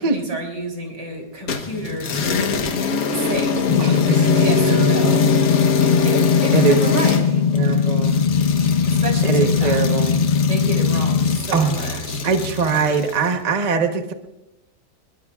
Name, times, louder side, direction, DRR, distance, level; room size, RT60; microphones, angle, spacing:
voice 1, 0.0-2.5 3.1-3.7 4.4-5.3 5.7-7.2 8.9-9.8 10.5-12.3, right 2 dB, 80° right, 2 dB, 4.1 m, -30 dB
sound 1, 1.5-13.2, left 4 dB, 60° left, 1.5 m, -23 dB
sound 2, 3.7-11.4, left 6 dB, 75° left, 0.4 m, -19 dB
voice 2, 3.8-5.5 6.5-6.8 7.5-8.3 9.2-10.2 11.5-14.1, right 5 dB, 30° right, 5 dB, 0.9 m, -22 dB
25.5 x 21.0 x 2.4 m, 0.96 s
omnidirectional pair, 1.8 m